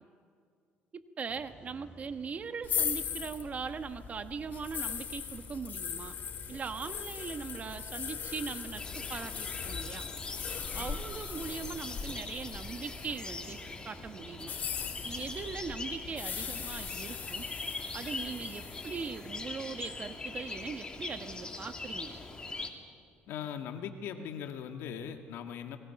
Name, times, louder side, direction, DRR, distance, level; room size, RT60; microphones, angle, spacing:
voice 1, 0.9-6.2 6.5-10.1 10.7-14.6 15.0-17.5 17.9-22.2, right 5 dB, 40° right, 9 dB, 1.2 m, -40 dB
sound 1, 1.3-19.8, right 2 dB, 25° right, 4.1 m, -54 dB
sound 2, 2.6-13.6 14.3-19.2, left 7 dB, 50° left, 2.6 m, -39 dB
sound 3, 8.7-22.7, left 3 dB, 20° left, 2.7 m, -42 dB
voice 2, 23.3-25.8, left 8 dB, 80° left, 5 dB, 1.8 m, -39 dB
30.0 x 21.5 x 5.9 m, 2.3 s
cardioid pair, 105°, 4 cm